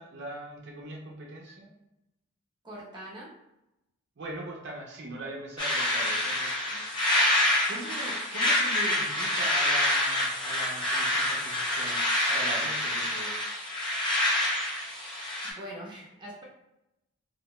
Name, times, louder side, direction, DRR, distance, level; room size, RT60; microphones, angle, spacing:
voice 1, 0.0-1.7 4.2-7.1 7.7-12.0 12.3-13.4, right 1 dB, 55° right, -1 dB, 0.5 m, -41 dB
voice 2, 2.6-3.3 15.4-16.4, equal, 20° right, -4 dB, 0.7 m, -42 dB
sound 1, 5.6-15.5, left 1 dB, 20° left, 0.6 m, -27 dB
2.6 x 2.1 x 2.9 m, 0.91 s
head